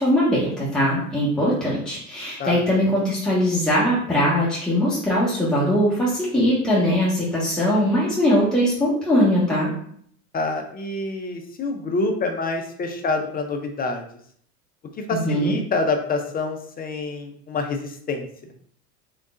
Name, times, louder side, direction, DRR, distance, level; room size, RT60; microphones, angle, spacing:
voice 1, 0.0-9.7 15.1-15.6, equal, ahead, -8 dB, 1.3 m, -21 dB
voice 2, 10.3-14.0 15.1-18.3, left 3 dB, 20° left, 5 dB, 0.5 m, -26 dB
3.7 x 3.6 x 2.4 m, 0.62 s
hypercardioid pair, 90°, 47 cm